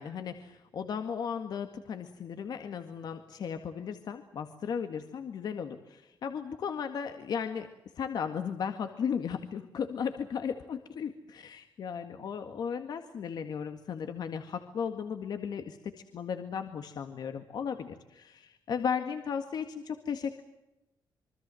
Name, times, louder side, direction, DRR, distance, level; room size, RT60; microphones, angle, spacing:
voice 1, 0.0-7.7 8.0-20.4, left 7 dB, 60° left, 7 dB, 1.9 m, -35 dB
26.5 x 24.0 x 7.8 m, 0.93 s
wide cardioid pair, 160°, 8 cm